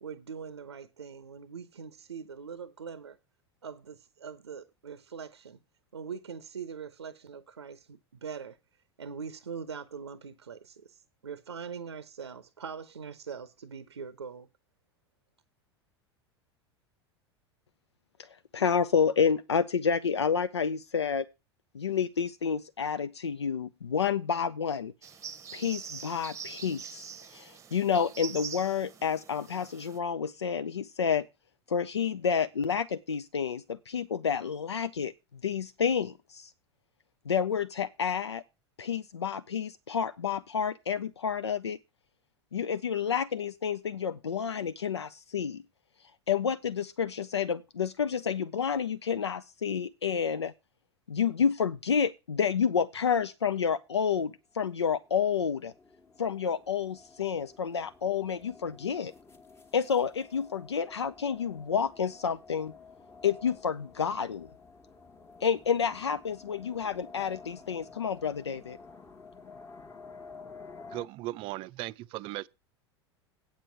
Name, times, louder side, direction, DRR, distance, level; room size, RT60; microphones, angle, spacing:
voice 1, 0.0-3.2 3.6-5.6 5.9-8.6 9.0-14.5, right 6 dB, 80° right, 0.6 m, -42 dB
voice 2, 18.2-21.3 21.7-24.9 25.5-31.3 31.7-35.1 35.4-36.5 37.3-38.4 38.8-41.8 42.5-45.6 46.3-50.5 51.1-55.7 56.2-59.1 59.7-62.7 63.2-64.5 65.4-68.8, left 7 dB, 80° left, 0.4 m, -29 dB
sound 1, 25.0-30.0, right 7 dB, 20° right, 0.9 m, -44 dB
sound 2, 54.9-71.1, left 4 dB, 15° left, 1.2 m, -51 dB
voice 3, 70.9-72.5, right 17 dB, 40° right, 0.5 m, -37 dB
8.7 x 7.4 x 5.6 m
figure-of-eight pair, 80°, 14 cm